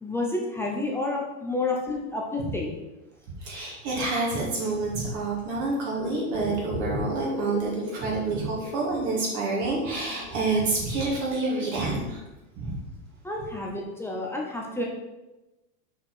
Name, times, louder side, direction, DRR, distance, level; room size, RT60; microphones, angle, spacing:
voice 1, 0.0-2.7 13.2-14.8, left 2 dB, 5° left, -1 dB, 0.7 m, -30 dB
voice 2, 3.4-12.2 12.6-12.8, right 3 dB, 40° right, -4 dB, 2.3 m, -28 dB
sound 1, 6.0-11.1, left 7 dB, 40° left, 0.7 m, -38 dB
6.0 x 4.9 x 6.3 m, 1.0 s
supercardioid pair, 140°, 45 cm